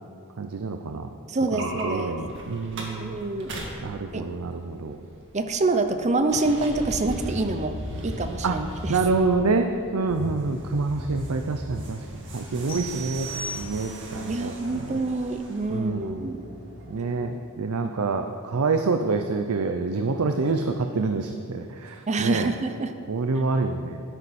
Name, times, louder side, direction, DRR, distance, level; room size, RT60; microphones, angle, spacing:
voice 1, 0.4-1.1 1.5-3.2 3.8-5.0 8.4-8.6 8.9-12.0 12.3-15.0 15.7-16.3 16.9-22.5 23.1-24.0, right 3 dB, 75° right, 6 dB, 0.6 m, -27 dB
voice 2, 1.3-2.2 3.0-3.5 4.1-4.2 5.3-7.8 8.0-9.0 14.3-16.4 22.1-22.9, right 2 dB, 30° right, 8 dB, 0.6 m, -26 dB
sound 1, 1.5-17.1, equal, 55° right, 1.9 m, -38 dB
sound 2, 12.7-14.2, right 2 dB, 40° left, 3.0 m, -37 dB
12.5 x 10.0 x 4.3 m, 2.6 s
head